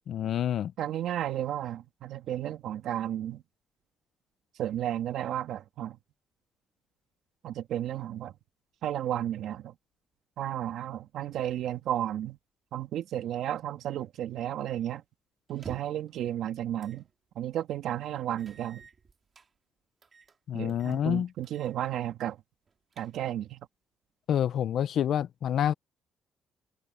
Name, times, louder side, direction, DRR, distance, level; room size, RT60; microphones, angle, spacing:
voice 1, 0.1-0.7 20.5-21.3 24.3-25.7, left 10 dB, 70° left, 0.6 m, -27 dB
voice 2, 0.8-3.4 4.6-6.0 7.4-8.3 8.8-9.7 10.4-12.4 12.7-15.0 15.5-17.0 17.3-18.8 20.5-22.4 23.0-23.7, right 11 dB, 80° right, 2.7 m, -33 dB
sound 1, 15.5-16.1 16.8-17.0 17.4-17.5 18.4-19.5 20.0-20.4 20.7-21.0 21.4-21.8 22.1-22.2 22.7-23.4, right 5 dB, 40° right, 3.0 m, -50 dB
cardioid pair, 105°, 0 cm